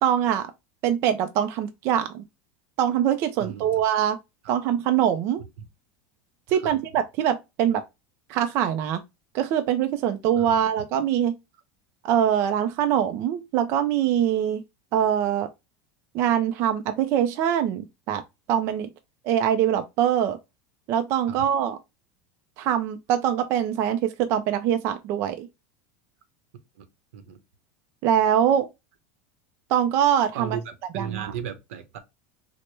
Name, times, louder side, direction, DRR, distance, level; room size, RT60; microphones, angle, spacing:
voice 1, 0.0-0.5 0.8-2.2 2.8-4.2 4.5-5.4 6.5-7.8 8.3-9.0 9.3-11.3 12.0-14.6 14.9-15.5 16.1-18.2 18.5-18.9 19.2-20.4 20.9-21.8 22.6-25.5 28.0-28.7 29.7-30.6 30.9-31.3, right 10 dB, 35° right, 0.4 m, -23 dB
voice 2, 3.4-3.7 4.4-4.6 5.6-5.7 6.6-6.7 10.4-10.6 21.3-21.4 26.8-26.9 27.1-27.4 30.3-32.0, right 8 dB, 85° right, 0.8 m, -35 dB
4.4 x 2.1 x 3.1 m
supercardioid pair, 170°, 7 cm